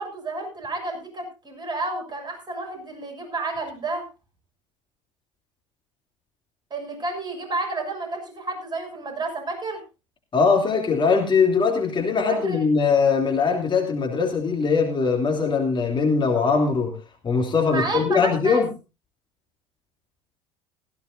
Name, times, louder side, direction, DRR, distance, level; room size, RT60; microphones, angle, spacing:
voice 1, 0.0-4.1 6.7-9.8 12.3-12.6 17.7-18.6, right 2 dB, 25° right, 4 dB, 7.1 m, -30 dB
voice 2, 10.3-16.9 17.2-18.7, left 5 dB, 30° left, 2 dB, 3.1 m, -21 dB
18.0 x 15.5 x 2.7 m, 0.29 s
figure-of-eight pair, 65°, 16 cm